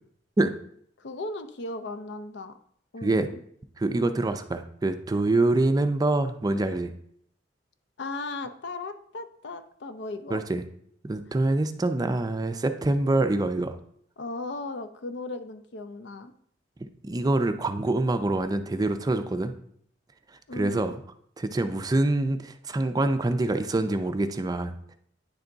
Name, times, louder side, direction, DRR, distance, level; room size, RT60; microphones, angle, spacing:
voice 1, 1.0-2.5 2.9-3.4 8.0-10.4 14.2-16.3 20.5-20.9, left 2 dB, 70° left, 9 dB, 0.6 m, -36 dB
voice 2, 3.8-6.9 10.3-10.6 11.0-13.8 17.0-19.5 20.5-20.9 21.4-25.0, right 2 dB, 20° right, 8 dB, 0.4 m, -25 dB
9.7 x 3.5 x 3.8 m, 0.66 s
head